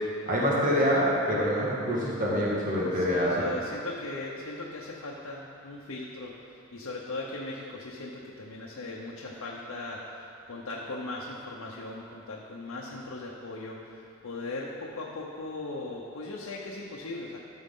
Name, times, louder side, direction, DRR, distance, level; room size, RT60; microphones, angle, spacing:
voice 1, 0.3-3.5, equal, 40° right, -6 dB, 1.7 m, -26 dB
voice 2, 2.9-6.3 6.7-17.4, left 2 dB, 85° left, -3 dB, 0.8 m, -38 dB
13.0 x 6.2 x 3.8 m, 2.7 s
head